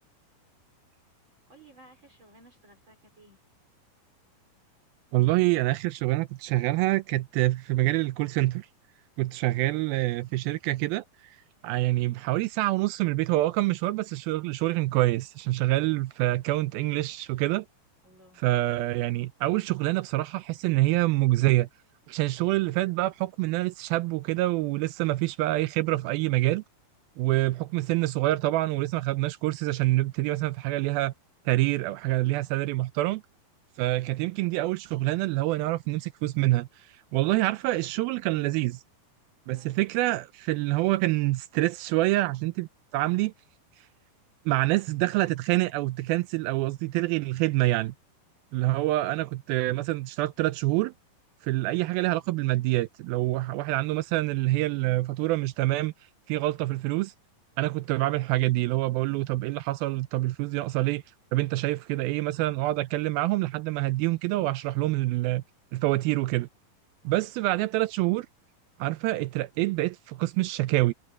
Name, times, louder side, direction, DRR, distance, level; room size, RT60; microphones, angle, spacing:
voice 1, 1.5-3.4 18.0-18.4 39.5-39.8 67.0-67.3, right 2 dB, 30° right, 5.3 m, -56 dB
voice 2, 5.1-8.7 9.2-11.4 11.6-17.7 18.4-21.7 22.1-26.6 27.2-31.1 31.5-33.2 33.8-38.8 39.5-43.3 44.5-47.9 48.5-50.9 51.4-55.9 56.3-57.1 57.6-61.0 61.3-65.4 65.7-66.5 67.0-68.3 68.8-70.9, right 18 dB, 85° right, 2.4 m, -26 dB
omnidirectional pair, 4.3 m